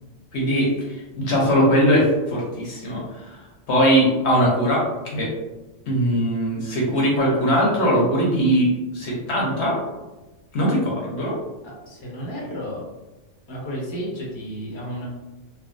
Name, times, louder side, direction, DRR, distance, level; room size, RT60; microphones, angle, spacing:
voice 1, 0.3-3.4 3.7-5.3 5.9-9.8 10.5-11.4, equal, 60° left, -3 dB, 0.9 m, -20 dB
voice 2, 11.6-12.8 13.5-15.1, equal, 25° left, -4 dB, 0.7 m, -32 dB
3.2 x 2.2 x 2.5 m, 1.1 s
omnidirectional pair, 1.3 m